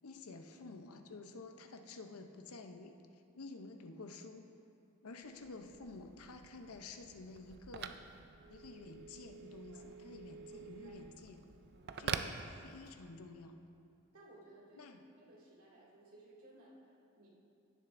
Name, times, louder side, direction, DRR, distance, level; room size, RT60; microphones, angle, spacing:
voice 1, 0.0-3.0 3.4-4.4 5.0-8.0 8.5-11.4 12.0-13.6 14.8-15.0, left 3 dB, 80° left, 6 dB, 0.7 m, -51 dB
Telephone, 5.3-13.2, right 6 dB, 45° right, 0.3 m, -47 dB
voice 2, 10.5-11.1 11.7-12.0 14.1-17.3, right 1 dB, 80° right, -6 dB, 2.3 m, -60 dB
16.0 x 7.6 x 2.6 m, 2.5 s
head